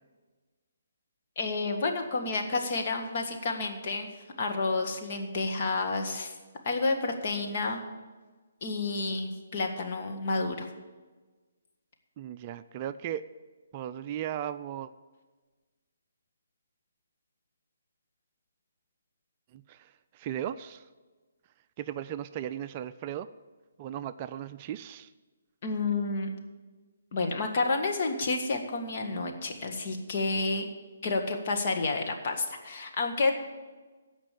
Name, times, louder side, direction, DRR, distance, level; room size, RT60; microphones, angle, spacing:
voice 1, 1.4-4.1 4.4-6.3 6.6-7.8 8.6-10.7 25.6-26.3 27.1-30.6 31.0-33.3, left 3 dB, 45° left, 3 dB, 1.7 m, -30 dB
voice 2, 12.2-13.3 13.7-14.9 19.5-20.9 21.8-23.3 23.8-25.1, right 10 dB, 30° right, 11 dB, 0.4 m, -36 dB
14.5 x 5.2 x 8.4 m, 1.3 s
figure-of-eight pair, 145°, 0 cm